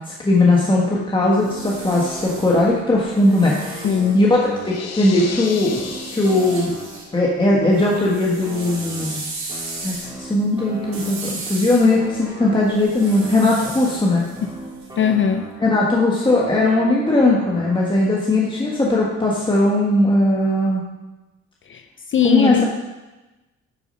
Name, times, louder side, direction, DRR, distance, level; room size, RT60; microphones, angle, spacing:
voice 1, 0.2-3.8 4.1-5.8 6.1-6.7 7.1-9.2 9.8-14.3 15.6-20.8 22.2-22.6, left 2 dB, 15° left, -4 dB, 1.4 m, -18 dB
sound 1, 1.2-4.8 5.4-7.1 7.4-15.3, right 3 dB, 65° right, 2.9 m, -36 dB
sound 2, 1.4-2.9 3.3-7.2 7.6-11.5 11.9-15.9 16.2-18.1, equal, 15° right, 2.6 m, -37 dB
voice 2, 3.8-4.2 14.2-14.6 15.0-15.4 21.7-22.6, left 8 dB, 40° left, 7 dB, 0.5 m, -20 dB
sound 3, 4.6-7.1, left 6 dB, 60° left, 0.9 m, -34 dB
9.5 x 4.6 x 5.4 m, 1.1 s
cardioid pair, 90°, 30 cm